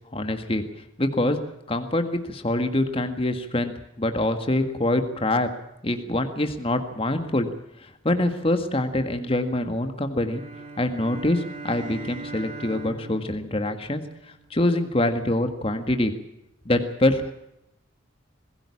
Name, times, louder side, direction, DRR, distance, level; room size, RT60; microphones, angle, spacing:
voice 1, 0.1-0.6 1.0-1.4 1.7-5.5 5.8-7.5 7.8-10.4 10.8-14.0 14.5-16.1 16.7-17.3, left 1 dB, 30° left, 7 dB, 1.7 m, -25 dB
sound 1, 10.2-14.7, right 3 dB, 30° right, 3.6 m, -40 dB
21.0 x 16.5 x 8.5 m, 0.83 s
head